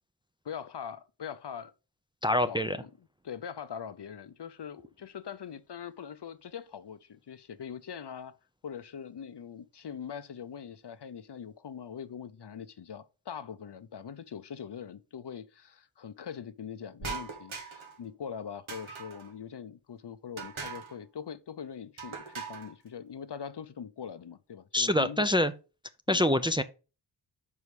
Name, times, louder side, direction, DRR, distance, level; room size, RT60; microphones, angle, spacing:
voice 1, 0.4-1.7 2.5-2.9 3.2-8.3 8.6-25.3 26.1-26.3, left 7 dB, 60° left, 0.6 m, -42 dB
voice 2, 2.2-2.8 24.7-25.5 26.1-26.6, left 1 dB, 10° right, 0.4 m, -25 dB
sound 1, 17.0-18.0 18.7-19.3 20.4-21.0 22.0-22.7, right 5 dB, 80° right, 1.6 m, -40 dB
5.4 x 4.8 x 5.2 m
wide cardioid pair, 80°, 47 cm